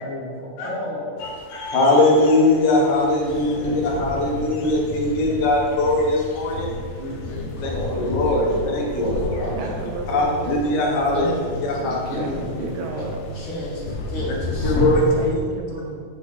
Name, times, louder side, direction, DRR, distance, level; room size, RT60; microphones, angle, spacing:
voice 1, 0.0-1.3 3.6-3.9 4.2-4.3 4.6-4.8 7.0-8.6 8.9-9.7 11.1-15.1, left 1 dB, 20° left, -6 dB, 1.1 m, -31 dB
voice 2, 1.2-6.7 7.6-9.4 10.1-11.3 11.6-12.2 14.6-15.3, left 2 dB, 90° left, -2 dB, 2.9 m, -21 dB
sound 1, 1.2-15.3, left 3 dB, 70° left, 1.9 m, -32 dB
sound 2, 8.0-13.7, equal, 45° left, 1.2 m, -39 dB
voice 3, 9.5-10.6 12.2-13.2 15.2-16.0, right 4 dB, 80° right, 2 dB, 1.7 m, -33 dB
8.1 x 5.9 x 4.0 m, 2.2 s
omnidirectional pair, 3.7 m